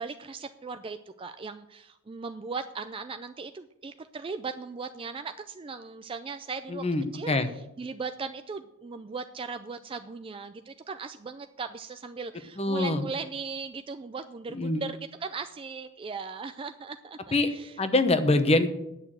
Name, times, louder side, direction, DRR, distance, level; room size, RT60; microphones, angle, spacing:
voice 1, 0.0-6.8 7.1-17.8, right 4 dB, 25° right, 9 dB, 0.4 m, -38 dB
voice 2, 6.7-7.5 12.6-13.1 14.5-14.8 17.3-17.5 17.8-18.7, left 2 dB, 30° left, 10 dB, 0.9 m, -24 dB
9.9 x 6.7 x 7.6 m, 0.88 s
head